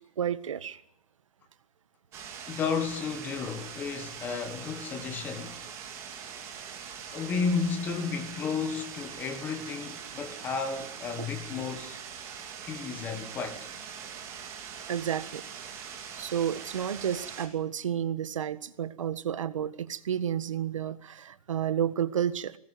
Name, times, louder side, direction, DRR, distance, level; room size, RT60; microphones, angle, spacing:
voice 1, 0.2-0.8 11.2-11.3 14.9-15.4 16.2-22.6, right 9 dB, 60° right, 1.6 m, -31 dB
sound 1, 2.1-17.5, right 7 dB, 15° right, 2.9 m, -42 dB
voice 2, 2.5-5.6 7.1-12.0 12.7-13.7, left 5 dB, 10° left, 1.3 m, -33 dB
22.5 x 19.5 x 9.5 m
hypercardioid pair, 175°, 18 cm